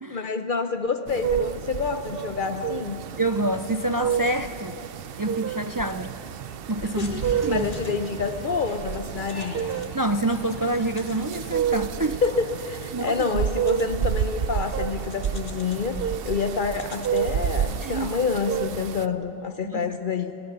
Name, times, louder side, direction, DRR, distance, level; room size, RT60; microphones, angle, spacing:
voice 1, 0.1-3.0 6.8-7.2 7.5-9.7 12.2-20.4, left 5 dB, 55° left, 8 dB, 0.9 m, -28 dB
sound 1, 1.1-19.1, right 8 dB, 70° right, 0.8 m, -30 dB
voice 2, 3.2-4.8 5.2-6.1 6.7-7.7 9.9-12.2 12.9-13.5 17.8-18.2 19.7-19.9, right 2 dB, 30° right, 9 dB, 0.4 m, -27 dB
sound 2, 7.0-18.7, left 1 dB, 40° left, 2.0 m, -44 dB
29.5 x 16.5 x 6.8 m, 3.0 s
omnidirectional pair, 1.0 m